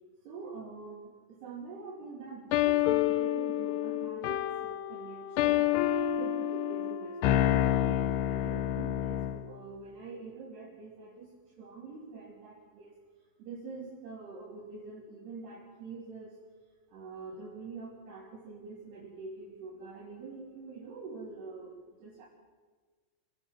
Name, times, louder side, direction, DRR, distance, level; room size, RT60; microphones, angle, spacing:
voice 1, 0.2-5.7 6.1-11.3 11.6-13.0 13.4-16.4 16.9-21.7 22.0-22.3, right 4 dB, 60° right, -4 dB, 4.9 m, -45 dB
sound 1, 2.5-9.5, left 12 dB, 75° left, 2.6 m, -28 dB
27.5 x 17.5 x 7.5 m, 1.4 s
omnidirectional pair, 5.6 m